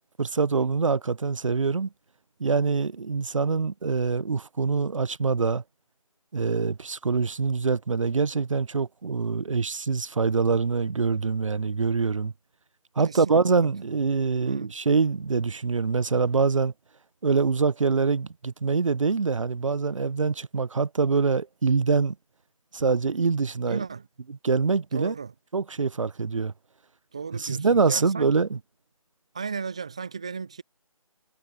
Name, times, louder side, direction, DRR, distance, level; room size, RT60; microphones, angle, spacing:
voice 1, 0.2-1.9 2.4-5.6 6.3-12.3 13.0-16.7 17.2-22.1 22.7-23.8 24.4-25.1 25.5-26.5 27.4-28.6, right 4 dB, 60° right, 0.9 m, -24 dB
voice 2, 13.0-14.0 14.4-14.7 23.6-24.1 24.9-25.3 27.1-28.4 29.3-30.6, right 5 dB, 10° right, 0.4 m, -36 dB
figure-of-eight pair, 155°, 18 cm